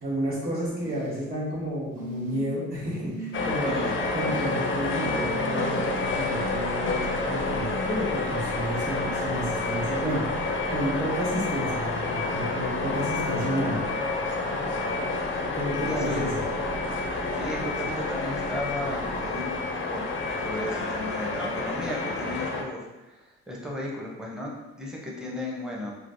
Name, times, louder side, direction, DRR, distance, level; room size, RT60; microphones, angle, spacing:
voice 1, 0.0-3.8 4.1-13.8 15.3-16.4, right 1 dB, 30° right, -8 dB, 1.1 m, -31 dB
sound 1, 0.7-1.2 1.9-2.6 3.0-3.5 4.2-5.8 7.0-7.1, left 1 dB, 80° right, 1.0 m, -38 dB
sound 2, 3.3-22.6, left 3 dB, 40° left, 0.4 m, -29 dB
sound 3, 5.5-22.1, right 2 dB, 60° right, 0.7 m, -45 dB
voice 2, 15.9-16.2 17.1-20.0 20.4-24.5 24.8-25.9, left 1 dB, ahead, -3 dB, 0.6 m, -35 dB
3.2 x 2.0 x 2.5 m, 1.1 s
cardioid pair, 90°, 30 cm